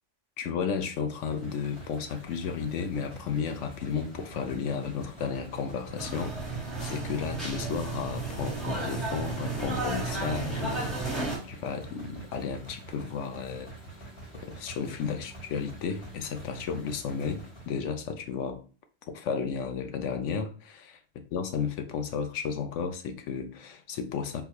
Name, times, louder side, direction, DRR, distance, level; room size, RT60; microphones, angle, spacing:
voice 1, 0.4-13.7 14.4-18.6 19.1-20.9 21.3-24.4, left 6 dB, 90° left, 1.0 m, -33 dB
sound 1, 1.1-17.9, right 2 dB, 60° left, 2.1 m, -46 dB
sound 2, 6.0-11.4, right 3 dB, ahead, 1.4 m, -33 dB
3.8 x 2.6 x 2.9 m
omnidirectional pair, 1.2 m